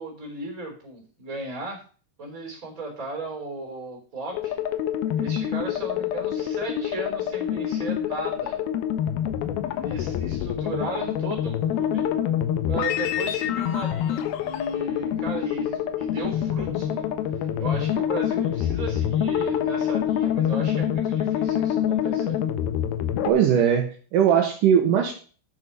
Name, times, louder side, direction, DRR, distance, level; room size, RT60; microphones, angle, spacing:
voice 1, 0.0-1.8 2.2-4.6 5.2-8.6 9.6-12.1 12.7-17.1 17.3-22.3, right 2 dB, 20° right, 0 dB, 3.5 m, -36 dB
sound 1, 4.3-23.3, left 10 dB, 80° left, 2.2 m, -26 dB
voice 2, 23.3-25.1, right 8 dB, 80° right, 2 dB, 1.9 m, -20 dB
10.0 x 6.8 x 5.3 m, 0.40 s
omnidirectional pair, 5.4 m